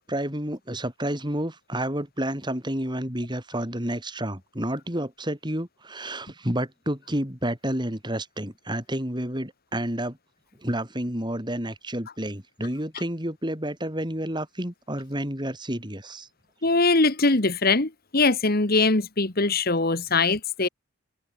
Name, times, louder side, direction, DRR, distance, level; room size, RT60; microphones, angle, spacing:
voice 1, 0.0-10.2 10.6-16.3, right 1 dB, 20° right, 5.0 m, -30 dB
voice 2, 16.6-20.7, left 3 dB, 45° left, 1.5 m, -22 dB
head